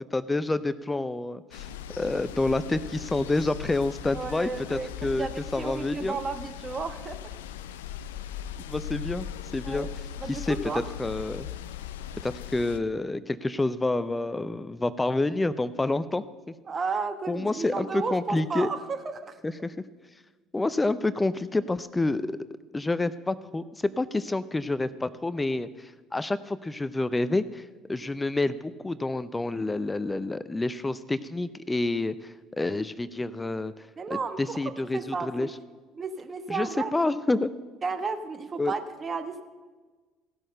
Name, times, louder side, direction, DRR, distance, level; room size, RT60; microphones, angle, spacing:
voice 1, 0.1-5.3 5.5-6.2 8.7-9.3 9.5-9.9 10.3-10.6 11.0-11.5 12.2-16.2 17.3-18.7 19.4-19.7 20.5-22.4 22.7-33.7 34.1-35.5 36.5-37.5 38.6-38.7, left 2 dB, 15° left, 15 dB, 0.5 m, -28 dB
sound 1, 1.5-12.8, left 9 dB, 80° left, 0.4 m, -39 dB
voice 2, 4.1-4.9 5.2-7.2 8.7-8.8 9.6-9.9 10.2-10.8 16.7-19.4 34.0-34.6 34.9-35.5 35.9-36.9 37.8-39.4, right 4 dB, 35° right, 9 dB, 1.1 m, -33 dB
15.5 x 6.3 x 6.6 m, 1.3 s
hypercardioid pair, 60°, 0 cm